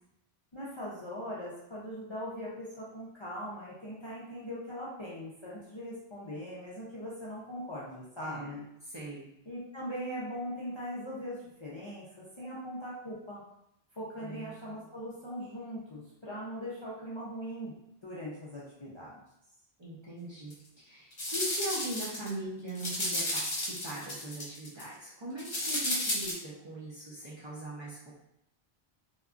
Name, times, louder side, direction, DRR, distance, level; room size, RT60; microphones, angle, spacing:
voice 1, 0.5-8.7 9.5-13.4 13.9-17.7 18.0-19.2, equal, 40° left, -8 dB, 0.4 m, -40 dB
voice 2, 8.2-9.3 14.2-14.9 19.8-20.6 20.8-28.1, right 1 dB, 35° right, -8 dB, 0.5 m, -41 dB
sound 1, 20.5-20.6 21.1-22.3 22.7-24.8 25.4-26.3, left 1 dB, 55° left, 1.0 m, -33 dB
2.8 x 2.3 x 2.4 m, 0.78 s
omnidirectional pair, 1.0 m